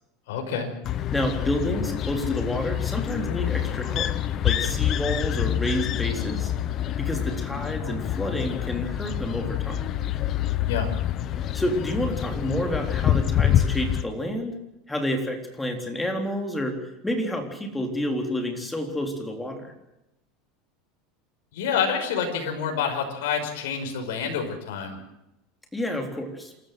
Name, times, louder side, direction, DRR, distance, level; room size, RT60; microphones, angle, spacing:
voice 1, 0.3-0.7 10.7-10.9 21.5-25.0, left 6 dB, 85° left, 3 dB, 5.6 m, -27 dB
sound 1, 0.8-14.0, left 11 dB, 35° left, 1.1 m, -26 dB
voice 2, 1.1-4.1 4.4-6.5 7.0-9.8 11.4-14.6 14.9-16.8 17.0-19.7 25.7-26.5, equal, 5° left, 4 dB, 3.7 m, -29 dB
28.5 x 13.5 x 7.8 m, 0.89 s
supercardioid pair, 155°, 0 cm